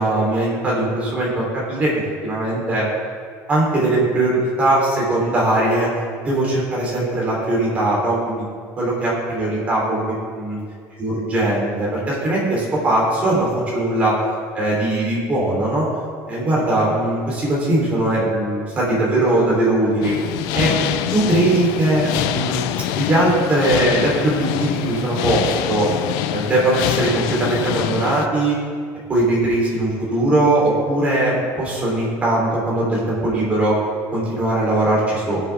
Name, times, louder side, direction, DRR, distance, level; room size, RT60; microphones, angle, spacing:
voice 1, 0.0-1.9 2.2-2.9 3.5-8.4 8.8-10.0 10.3-10.6 11.0-14.2 14.5-15.9 16.3-20.1 20.5-22.6 22.9-25.9 26.3-28.6 29.1-33.8 34.1-35.4, right 1 dB, 20° right, -5 dB, 3.4 m, -20 dB
sound 1, 20.0-28.3, left 11 dB, 75° left, 0.5 m, -25 dB
19.5 x 7.0 x 3.5 m, 2.1 s
cardioid pair, 170°, 7 cm